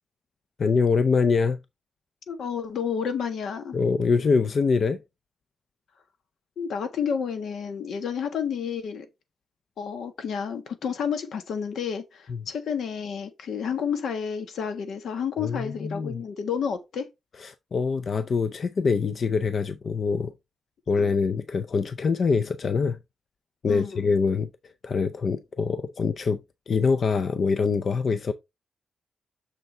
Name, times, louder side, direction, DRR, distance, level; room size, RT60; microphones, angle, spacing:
voice 1, 0.6-1.6 3.7-5.0 12.3-12.4 15.4-16.2 17.4-20.3 20.9-23.0 23.6-28.3, left 5 dB, 45° left, 0.5 m, -24 dB
voice 2, 2.3-3.8 6.6-9.1 9.8-17.1 21.0-21.1 23.7-24.0, left 7 dB, 75° left, 1.5 m, -30 dB
6.8 x 6.7 x 3.3 m
wide cardioid pair, 135°, 0 cm